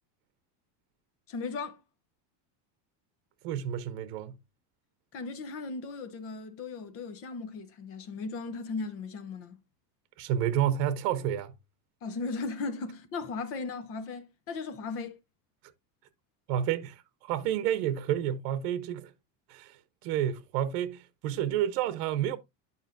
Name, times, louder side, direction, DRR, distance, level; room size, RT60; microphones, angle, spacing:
voice 1, 1.3-1.8 5.1-9.6 12.0-15.2, left 4 dB, 30° left, 0.8 m, -37 dB
voice 2, 3.4-4.4 10.2-11.5 16.5-19.1 19.5-22.4, right 10 dB, 90° right, 0.8 m, -30 dB
9.7 x 5.4 x 2.6 m
cardioid pair, 175°, 46 cm